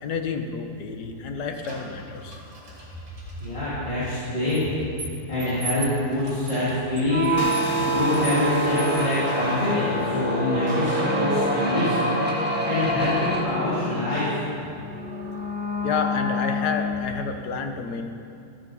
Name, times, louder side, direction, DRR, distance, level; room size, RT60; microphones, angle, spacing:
voice 1, 0.0-2.4 15.8-18.1, left 5 dB, 85° left, 5 dB, 1.5 m, -29 dB
sound 1, 1.6-3.5 4.5-9.6 10.7-11.3, right 3 dB, 85° right, 3.1 m, -39 dB
voice 2, 3.4-4.6 5.3-7.3 7.7-14.3, left 1 dB, 30° left, -12 dB, 2.9 m, -25 dB
sound 2, 7.0-17.3, equal, 5° right, 1.2 m, -26 dB
sound 3, 7.4-10.3, left 7 dB, 60° left, 0.9 m, -38 dB
14.0 x 9.0 x 5.6 m, 2.6 s
omnidirectional pair, 1.7 m